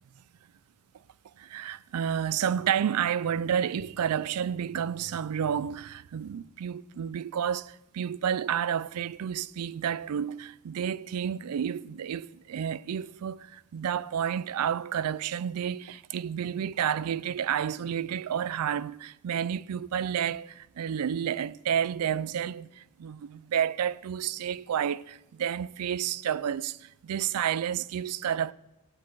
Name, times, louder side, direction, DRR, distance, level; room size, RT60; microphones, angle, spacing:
voice 1, 1.4-28.5, right 8 dB, 85° right, 0.4 m, -30 dB
15.0 x 9.4 x 4.7 m
head